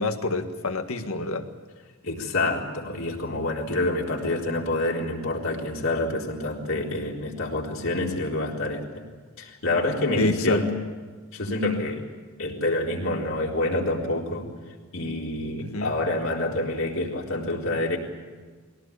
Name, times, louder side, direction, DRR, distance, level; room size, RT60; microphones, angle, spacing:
voice 1, 0.0-1.5 10.1-10.6 15.6-15.9, left 2 dB, 90° left, 6 dB, 1.9 m, -27 dB
voice 2, 2.0-9.0 9.4-10.8 11.3-12.0 12.4-14.5 14.9-18.0, left 2 dB, 70° left, -2 dB, 4.1 m, -27 dB
22.5 x 17.5 x 8.7 m, 1.4 s
head